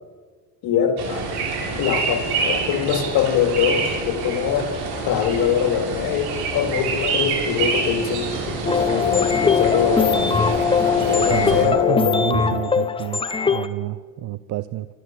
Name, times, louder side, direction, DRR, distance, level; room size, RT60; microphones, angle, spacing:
voice 1, 0.6-1.3 1.8-4.8 5.0-10.4 10.9-12.3, left 8 dB, 70° left, 7 dB, 2.8 m, -23 dB
sound 1, 1.0-11.6, right 4 dB, 80° right, 7.0 m, -27 dB
sound 2, 8.7-13.7, left 5 dB, 15° left, 1.2 m, -20 dB
voice 2, 11.3-13.2 13.5-14.9, right 15 dB, 55° right, 14 dB, 0.8 m, -29 dB
26.5 x 13.5 x 7.8 m, 1.5 s
cardioid pair, 120°, 38 cm